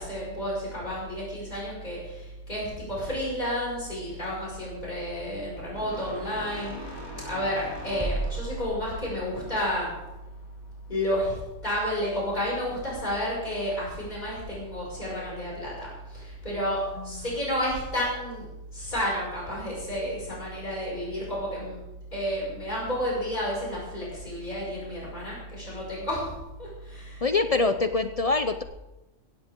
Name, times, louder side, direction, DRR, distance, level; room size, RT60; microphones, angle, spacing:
voice 1, 0.0-9.9 10.9-18.4 18.7-21.8 22.1-27.7, equal, 30° left, -5 dB, 6.2 m, -31 dB
sound 1, 5.7-10.9, right 1 dB, 15° right, 2.9 m, -37 dB
voice 2, 27.2-28.6, left 3 dB, 55° left, 9 dB, 0.4 m, -24 dB
16.5 x 16.0 x 3.7 m, 1.0 s
omnidirectional pair, 1.4 m